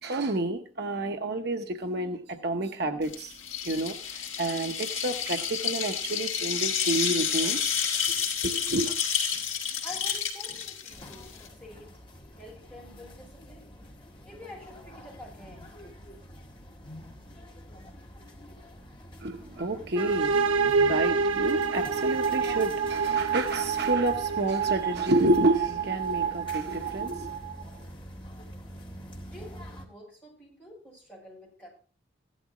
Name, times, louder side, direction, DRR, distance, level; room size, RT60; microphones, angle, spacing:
voice 1, 0.0-3.4 3.6-7.8 8.4-9.0 19.2-27.3, right 2 dB, 55° right, 0.8 m, -29 dB
sound 1, 3.0-11.5, left 7 dB, 75° left, 2.5 m, -30 dB
voice 2, 9.6-11.3 11.6-12.0 12.4-13.7 14.2-15.8 29.3-31.7, left 1 dB, 10° left, 7.6 m, -48 dB
sound 2, 10.9-29.9, equal, 25° left, 2.0 m, -46 dB
sound 3, 20.0-27.6, right 5 dB, 80° right, 1.0 m, -27 dB
15.5 x 12.0 x 3.0 m
head